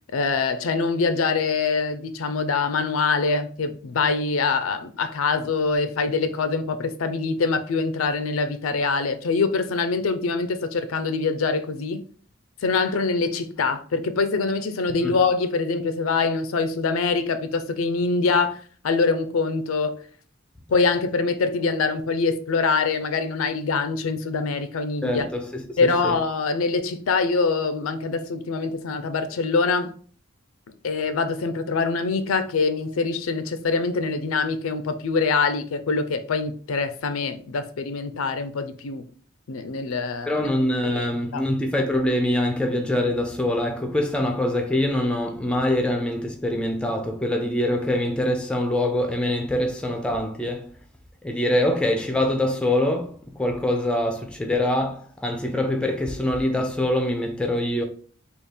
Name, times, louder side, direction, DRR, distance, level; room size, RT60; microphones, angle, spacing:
voice 1, 0.1-12.0 12.6-20.0 20.7-25.3 25.8-29.9 30.8-39.0 39.5-40.5 40.8-41.1 41.3-41.4, left 4 dB, 85° left, 0.5 m, -24 dB
voice 2, 25.0-26.1 40.3-50.7 51.2-57.9, left 1 dB, 5° left, 0.4 m, -24 dB
3.6 x 2.4 x 3.2 m
head